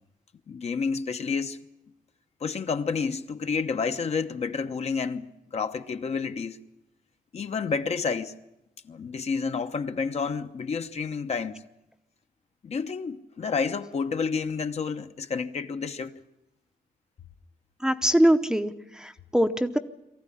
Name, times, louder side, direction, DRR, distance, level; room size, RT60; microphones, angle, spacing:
voice 1, 0.5-1.6 2.4-6.6 7.3-8.3 8.8-11.6 12.6-16.2, left 5 dB, 45° left, 1.0 m, -30 dB
voice 2, 17.8-19.8, equal, 5° right, 0.8 m, -23 dB
23.5 x 14.5 x 10.0 m
wide cardioid pair, 140°, 15 cm